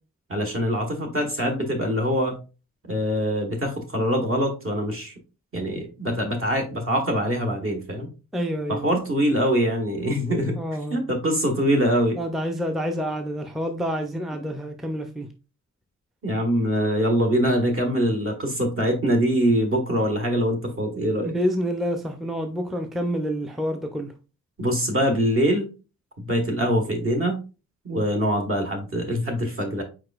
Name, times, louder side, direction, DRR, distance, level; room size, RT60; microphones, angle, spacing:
voice 1, 0.3-2.3 2.9-5.1 5.5-8.1 8.7-10.6 10.9-12.2 14.3-14.5 16.2-21.3 24.6-25.7 26.2-27.4 27.8-29.8, equal, 45° right, 3 dB, 1.4 m, -23 dB
voice 2, 8.3-8.8 10.6-11.0 12.2-15.3 21.3-24.1, equal, ahead, 5 dB, 0.5 m, -28 dB
4.8 x 4.4 x 2.4 m, 0.31 s
wide cardioid pair, 140°, 30 cm